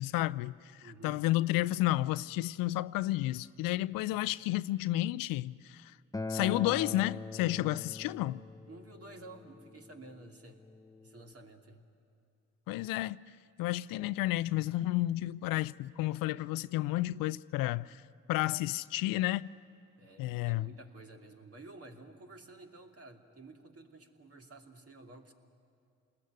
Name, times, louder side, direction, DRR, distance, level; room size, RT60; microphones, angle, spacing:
voice 1, 0.0-5.9 6.3-8.5 12.7-13.2 13.6-18.0 18.3-19.5 20.2-20.7, left 16 dB, 70° left, 0.5 m, -31 dB
voice 2, 0.8-1.2 4.1-4.4 8.7-10.6 11.0-11.8 20.0-25.3, right 2 dB, 40° right, 3.0 m, -52 dB
Acoustic guitar, 6.1-11.3, left 3 dB, 10° left, 0.6 m, -42 dB
28.0 x 20.5 x 9.5 m
hypercardioid pair, 45°, 35 cm